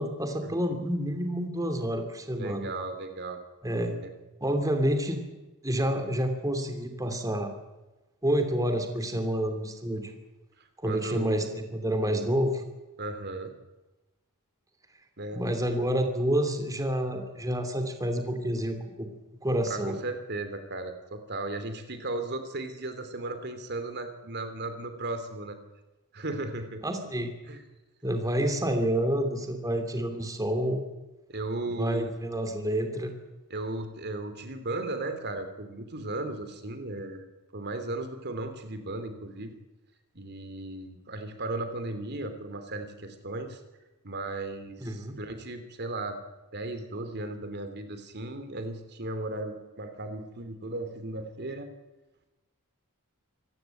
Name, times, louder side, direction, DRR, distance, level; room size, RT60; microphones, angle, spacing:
voice 1, 0.0-2.7 3.6-3.9 4.4-5.2 5.6-7.5 8.2-10.1 10.8-12.6 15.3-19.1 19.4-20.0 26.8-27.3 28.0-30.8 31.8-33.1 44.8-45.2, equal, 15° right, 5 dB, 2.8 m, -28 dB
voice 2, 2.3-3.4 4.0-4.1 10.6-11.5 13.0-13.5 15.2-15.4 19.7-25.6 26.1-26.8 27.5-27.6 31.3-32.1 33.5-37.2 37.5-39.5 40.1-43.6 44.0-46.2 46.5-51.7, right 2 dB, 50° right, 8 dB, 2.9 m, -36 dB
26.5 x 15.0 x 9.1 m, 1.1 s
head